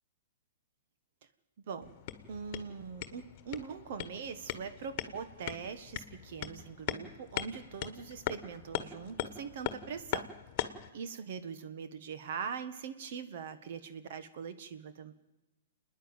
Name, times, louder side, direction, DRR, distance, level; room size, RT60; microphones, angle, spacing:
sound 1, 1.8-10.9, left 12 dB, 40° left, 1.4 m, -40 dB
voice 1, 2.3-10.3 10.9-15.1, right 6 dB, 60° right, 11 dB, 1.6 m, -42 dB
27.5 x 10.0 x 9.2 m, 1.0 s
hypercardioid pair, 140°, 0 cm